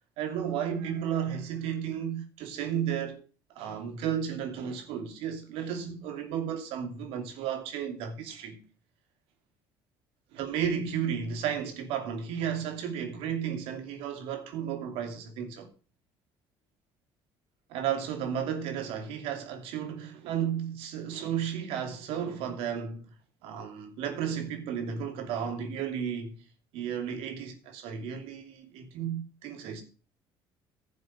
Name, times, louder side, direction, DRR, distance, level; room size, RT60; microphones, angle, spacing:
voice 1, 0.2-3.2 3.5-8.6 10.3-15.7 17.7-23.1 23.4-26.4 26.7-29.8, right 8 dB, 80° right, 2.8 m, -33 dB
11.5 x 7.4 x 5.6 m
cardioid pair, 95°, 10 cm